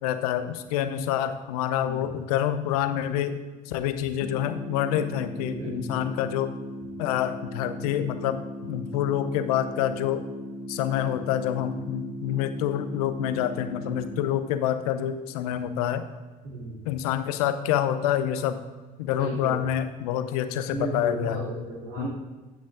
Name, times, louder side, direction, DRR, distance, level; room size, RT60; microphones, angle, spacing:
voice 1, 0.0-3.4 3.7-6.5 7.0-10.2 10.7-16.0 16.8-18.6 19.0-21.5 22.0-22.1, left 10 dB, 80° left, 10 dB, 0.8 m, -27 dB
sound 1, 4.2-14.2, equal, 20° left, 1.8 m, -38 dB
voice 2, 5.4-6.1 16.4-16.8 19.2-19.6 20.7-22.1, right 3 dB, 65° right, -9 dB, 3.4 m, -35 dB
15.0 x 6.3 x 3.7 m, 1.3 s
hypercardioid pair, 65°, 19 cm